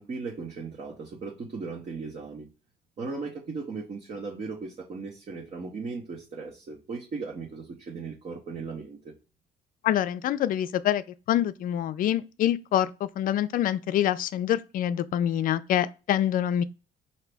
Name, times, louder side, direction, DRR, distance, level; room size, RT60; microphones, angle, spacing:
voice 1, 0.0-2.5 3.0-9.1, right 4 dB, 40° right, 0.9 m, -37 dB
voice 2, 9.8-16.6, left 11 dB, 55° left, 0.4 m, -26 dB
5.0 x 2.7 x 3.4 m
cardioid pair, 110°, 17 cm